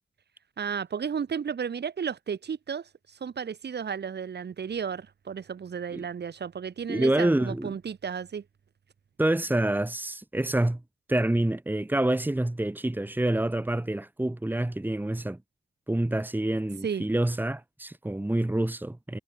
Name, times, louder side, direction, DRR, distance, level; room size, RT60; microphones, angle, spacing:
voice 1, 0.6-8.4 16.8-17.1, right 7 dB, 60° right, 4.5 m, -33 dB
voice 2, 6.9-7.7 9.2-10.8 11.1-15.4 15.9-19.2, right 1 dB, 10° right, 2.8 m, -27 dB
wide cardioid pair, 130°, 19 cm